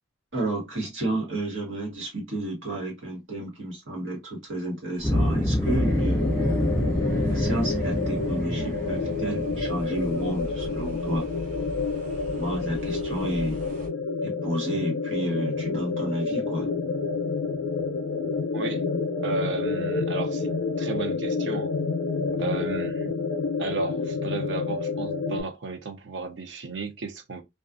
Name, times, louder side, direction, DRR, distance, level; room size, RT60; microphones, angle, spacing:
voice 1, 0.3-6.3 7.3-11.2 12.3-13.6 14.2-16.7, right 1 dB, 85° right, 1.3 m, -31 dB
sound 1, 5.0-11.3, equal, 5° left, 0.4 m, -27 dB
sound 2, 5.0-13.9, equal, 40° right, 0.9 m, -41 dB
sound 3, 5.7-25.4, left 4 dB, 80° left, 0.4 m, -29 dB
voice 2, 19.2-21.7 22.3-23.2 23.6-27.4, right 3 dB, 65° right, 0.6 m, -34 dB
2.3 x 2.3 x 2.4 m
head